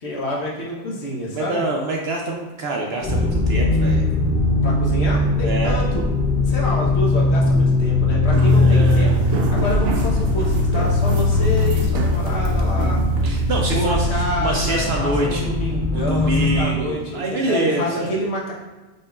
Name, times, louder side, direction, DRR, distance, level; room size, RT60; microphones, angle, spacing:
voice 1, 0.0-1.7 4.6-6.0 6.4-13.4 13.7-18.5, equal, 60° left, -4 dB, 1.1 m, -28 dB
voice 2, 1.3-4.0 5.4-5.8 8.5-9.3 13.2-15.5 15.9-18.1, right 2 dB, 65° right, 0 dB, 0.7 m, -26 dB
sound 1, 3.0-16.6, left 2 dB, 80° left, 1.8 m, -19 dB
sound 2, 8.3-13.7, right 2 dB, 85° right, 1.1 m, -28 dB
5.6 x 3.5 x 2.2 m, 1.2 s
omnidirectional pair, 1.4 m